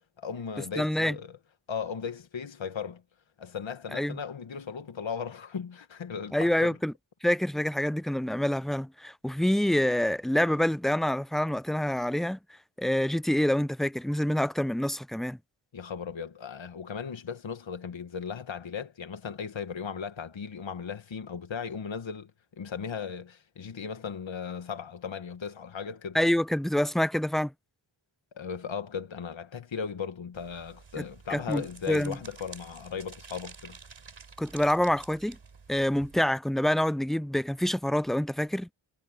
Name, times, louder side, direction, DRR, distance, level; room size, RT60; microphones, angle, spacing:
voice 1, 0.2-1.4 1.7-3.0 3.4-6.7 15.7-22.3 22.6-26.2 28.3-33.8, left 6 dB, 70° left, 1.5 m, -37 dB
voice 2, 0.8-1.2 3.9-4.2 6.3-6.9 7.2-12.4 12.8-15.4 26.1-27.5 31.3-32.2 34.4-35.4 35.7-38.7, left 1 dB, ahead, 0.4 m, -26 dB
sound 1, 30.3-36.3, right 5 dB, 70° right, 4.2 m, -50 dB
cardioid pair, 45°, 48 cm